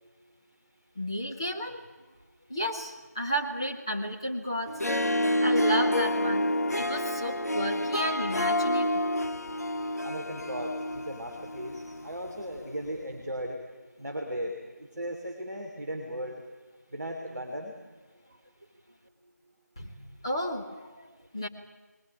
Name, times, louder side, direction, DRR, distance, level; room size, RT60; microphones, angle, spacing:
voice 1, 0.9-1.8 2.5-4.8 5.4-9.0 19.8-21.5, equal, 15° left, -1 dB, 1.3 m, -33 dB
Harp, 4.7-12.1, left 1 dB, 65° left, 1.1 m, -28 dB
voice 2, 10.0-13.6 14.0-16.4 16.9-17.7, equal, 5° right, -12 dB, 0.9 m, -37 dB
20.5 x 19.0 x 8.9 m, 1.2 s
figure-of-eight pair, 170°, 9 cm